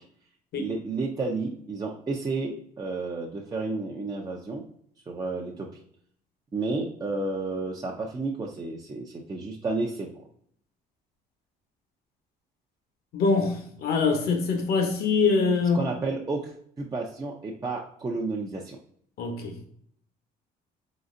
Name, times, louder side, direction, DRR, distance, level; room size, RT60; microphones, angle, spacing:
voice 1, 0.5-4.6 5.1-5.7 6.5-10.1 15.7-18.8, right 3 dB, 20° right, 0.6 m, -31 dB
voice 2, 13.1-15.8 19.2-19.7, left 4 dB, 65° left, 1.0 m, -24 dB
4.0 x 3.9 x 2.5 m
cardioid pair, 110°, 17 cm